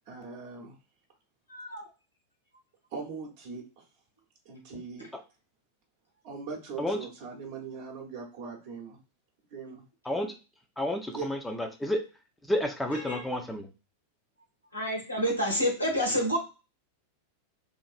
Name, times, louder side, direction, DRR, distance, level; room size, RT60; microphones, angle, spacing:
voice 1, 0.1-0.7 2.9-3.8 4.4-5.1 6.2-9.0 9.5-9.8 11.1-11.3, right 5 dB, 50° right, 0 dB, 0.8 m, -40 dB
voice 2, 1.5-1.9 13.1-13.2 14.7-16.4, equal, 85° left, -3 dB, 1.2 m, -28 dB
voice 3, 10.8-12.0 12.5-13.7, left 1 dB, 5° left, 3 dB, 0.5 m, -30 dB
3.1 x 2.4 x 2.3 m, 0.31 s
figure-of-eight pair, 90°, 0 cm